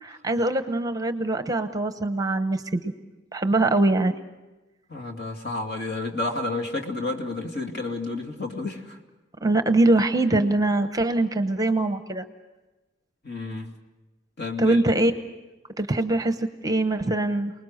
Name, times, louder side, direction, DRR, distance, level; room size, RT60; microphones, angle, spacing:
voice 1, 0.0-2.9 3.3-4.1 9.4-12.3 14.6-15.1 15.8-17.5, right 2 dB, 20° right, 8 dB, 0.9 m, -23 dB
voice 2, 4.9-9.0 13.2-13.8 14.4-14.8, left 2 dB, 55° left, 3 dB, 2.6 m, -31 dB
29.0 x 20.0 x 6.5 m, 1.1 s
head